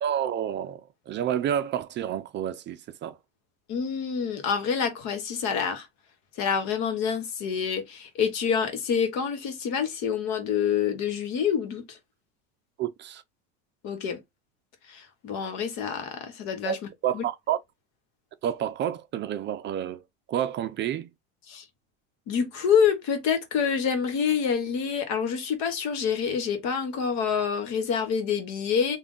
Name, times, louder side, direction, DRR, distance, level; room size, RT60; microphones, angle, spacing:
voice 1, 0.0-3.2 12.8-13.2 16.7-16.8 17.0-17.6 18.4-20.0 20.3-21.1, right 10 dB, 35° right, 0.4 m, -29 dB
voice 2, 3.7-5.9 6.4-12.0 13.8-14.2 14.9-16.8 17.1-17.3 21.5-21.6 22.3-29.0, left 7 dB, 60° left, 1.3 m, -27 dB
3.4 x 2.3 x 3.7 m
supercardioid pair, 110°, 32 cm